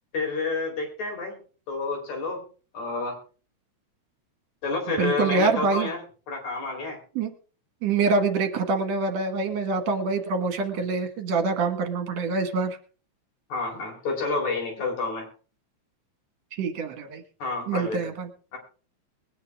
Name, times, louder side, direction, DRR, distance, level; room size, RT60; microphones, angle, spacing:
voice 1, 0.1-1.4 1.7-2.4 2.7-3.2 4.6-7.0 10.7-10.8 13.5-15.3 17.4-18.1 18.5-18.6, left 3 dB, 80° left, 1 dB, 5.4 m, -29 dB
voice 2, 5.0-5.9 7.2-7.3 7.8-12.8 16.5-17.2 17.7-18.3, right 4 dB, 65° right, 6 dB, 2.7 m, -25 dB
21.5 x 9.9 x 3.5 m, 0.39 s
omnidirectional pair, 3.3 m